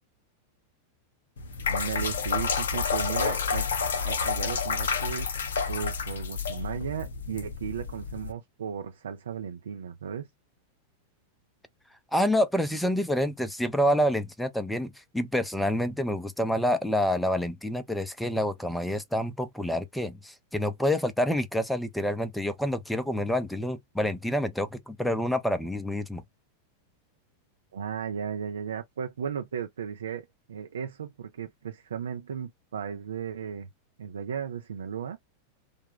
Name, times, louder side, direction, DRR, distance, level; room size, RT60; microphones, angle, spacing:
sound 1, 1.4-8.3, left 6 dB, 65° left, 0.6 m, -29 dB
voice 1, 1.7-3.7 4.0-5.3 5.7-10.3 27.7-33.7 34.0-35.2, right 7 dB, 65° right, 0.4 m, -35 dB
voice 2, 12.1-26.2, equal, 5° left, 0.6 m, -27 dB
3.3 x 2.1 x 3.6 m
figure-of-eight pair, 90°, 0 cm